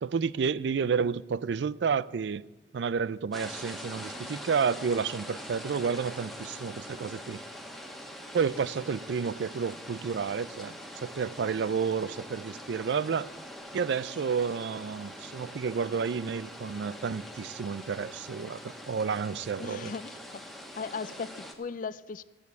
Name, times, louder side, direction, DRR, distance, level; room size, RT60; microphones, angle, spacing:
voice 1, 0.0-2.5 2.7-7.4 8.3-13.3 13.7-19.9, right 6 dB, 75° right, 0.4 m, -30 dB
sound 1, 3.3-21.5, equal, ahead, 1.3 m, -43 dB
voice 2, 19.6-22.2, left 5 dB, 50° left, 0.4 m, -38 dB
14.0 x 7.0 x 8.2 m
head